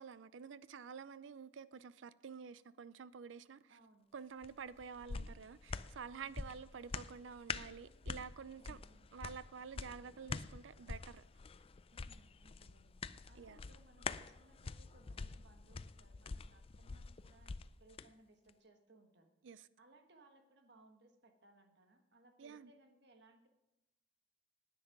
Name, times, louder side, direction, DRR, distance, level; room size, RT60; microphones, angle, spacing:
voice 1, 0.0-3.6 4.1-8.8 9.1-11.2 13.4-13.6 19.4-19.7 22.4-22.7, right 6 dB, 90° right, 0.5 m, -50 dB
voice 2, 3.7-4.1 6.2-6.5 8.6-9.1 11.9-19.3 19.8-23.5, right 2 dB, 65° right, 1.5 m, -66 dB
sound 1, 4.4-18.1 18.5-18.6, left 4 dB, 30° left, 0.4 m, -46 dB
10.0 x 9.7 x 6.0 m
head